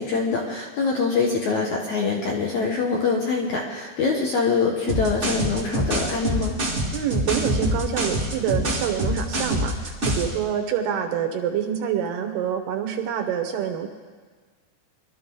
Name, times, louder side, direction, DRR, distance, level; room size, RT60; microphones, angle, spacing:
voice 1, 0.0-6.6, left 4 dB, 70° left, -1 dB, 1.8 m, -24 dB
sound 1, 4.9-10.4, equal, 55° right, 0.7 m, -25 dB
voice 2, 6.9-13.9, right 9 dB, 75° right, 5 dB, 2.5 m, -26 dB
22.5 x 13.0 x 3.9 m, 1.5 s
omnidirectional pair, 5.3 m